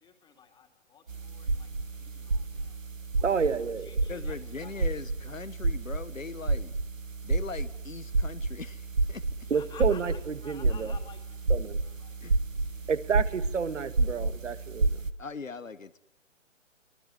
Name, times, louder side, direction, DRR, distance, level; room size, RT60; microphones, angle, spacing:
voice 1, 0.0-2.8 3.1-3.5 3.8-4.7 9.5-12.2 12.6-12.9, left 7 dB, 10° left, 6 dB, 2.6 m, -53 dB
sound 1, 1.1-15.1, right 3 dB, 85° right, 1.7 m, -30 dB
voice 2, 3.2-3.9 9.5-11.0 11.5-11.8 12.9-15.0, right 6 dB, 70° right, 13 dB, 2.0 m, -30 dB
voice 3, 4.1-6.7 7.2-9.2 10.8-11.0 12.2-12.4 15.2-16.0, left 5 dB, 90° left, 14 dB, 1.6 m, -40 dB
24.5 x 19.0 x 9.7 m, 0.71 s
figure-of-eight pair, 135°, 38 cm